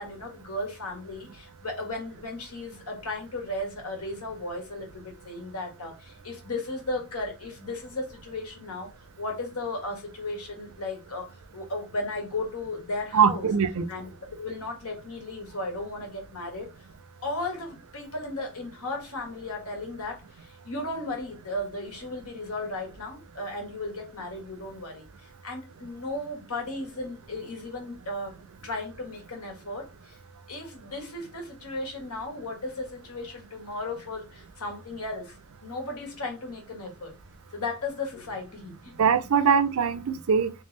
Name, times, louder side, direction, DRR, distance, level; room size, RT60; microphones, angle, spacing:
voice 1, 0.0-8.9 9.2-13.5 13.9-16.7 17.2-28.4 28.6-30.2 30.5-37.1 37.5-38.9, left 2 dB, 75° left, 1.6 m, -35 dB
voice 2, 13.1-13.9 39.0-40.5, right 6 dB, 65° right, 0.5 m, -22 dB
3.3 x 3.1 x 3.2 m
head